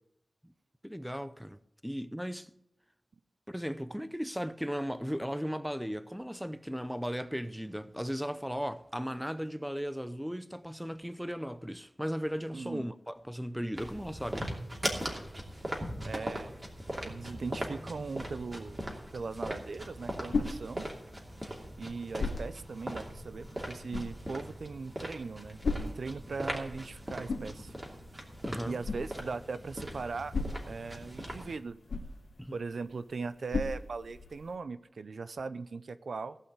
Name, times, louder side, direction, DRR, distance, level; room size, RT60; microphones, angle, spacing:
voice 1, 0.8-2.5 3.5-14.5 28.5-28.8 32.4-32.6, equal, ahead, 0.6 m, -36 dB
voice 2, 12.5-12.9 16.0-16.5 17.0-18.8 19.1-20.9 21.8-27.7 28.6-30.3 30.7-31.8 32.5-36.4, right 4 dB, 80° right, 0.6 m, -39 dB
sound 1, 13.8-31.6, right 1 dB, 25° right, 2.7 m, -40 dB
sound 2, 19.7-34.6, left 3 dB, 85° left, 1.4 m, -40 dB
16.0 x 5.7 x 8.1 m
wide cardioid pair, 105°, 0 cm